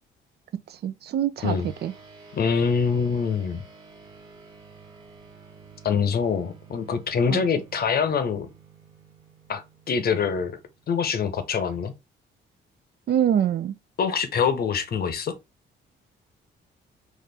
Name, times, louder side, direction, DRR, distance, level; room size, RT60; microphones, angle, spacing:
voice 1, 0.7-1.9 7.3-7.4 13.1-13.8, right 10 dB, 55° right, 0.4 m, -25 dB
sound 1, 1.4-11.1, right 5 dB, 20° right, 1.4 m, -50 dB
voice 2, 2.3-3.6 5.8-8.5 9.5-10.6 10.9-11.9 14.0-15.3, left 6 dB, 50° left, 0.8 m, -24 dB
4.2 x 2.4 x 3.3 m
cardioid pair, 90°, 20 cm